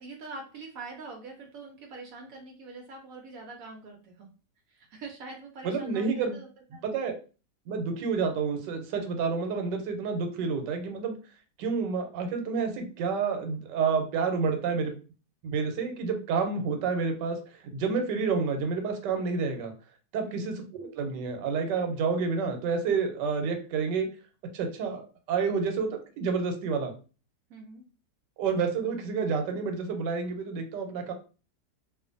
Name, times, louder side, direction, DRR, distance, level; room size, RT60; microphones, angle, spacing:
voice 1, 0.0-4.3 4.7-6.8 20.3-20.5 27.5-27.8, right 3 dB, 70° right, 2 dB, 0.9 m, -44 dB
voice 2, 5.6-6.4 6.8-7.1 7.7-11.2 11.6-14.9 15.4-19.7 20.1-24.1 24.5-26.9 28.4-31.1, right 5 dB, 90° right, 5 dB, 1.2 m, -29 dB
2.5 x 2.4 x 2.5 m, 0.35 s
omnidirectional pair, 1.9 m